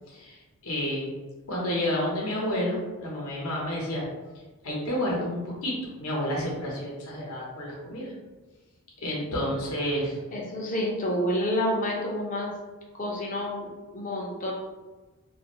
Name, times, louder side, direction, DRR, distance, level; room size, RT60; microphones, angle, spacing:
voice 1, 0.1-0.4 0.6-1.1 1.5-4.0 4.6-5.7 6.0-8.1 9.0-10.2, equal, 65° left, -3 dB, 0.8 m, -30 dB
voice 2, 10.3-12.5 13.0-14.5, equal, 35° left, -2 dB, 0.6 m, -29 dB
2.5 x 2.4 x 2.9 m, 1.2 s
head